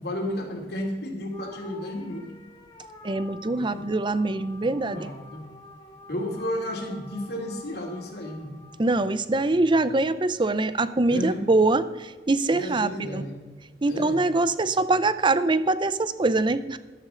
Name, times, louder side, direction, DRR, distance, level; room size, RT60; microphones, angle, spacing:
voice 1, 0.0-2.3 3.5-3.9 4.6-5.4 6.1-8.5 11.1-11.4 12.5-13.4 13.9-14.2, left 1 dB, 65° left, 1 dB, 2.8 m, -33 dB
sound 1, 1.3-9.9, left 1 dB, 25° left, 1.8 m, -49 dB
voice 2, 3.0-5.1 8.8-13.2 13.8-16.8, right 2 dB, 25° right, 14 dB, 0.5 m, -23 dB
14.5 x 11.5 x 3.8 m, 1.4 s
head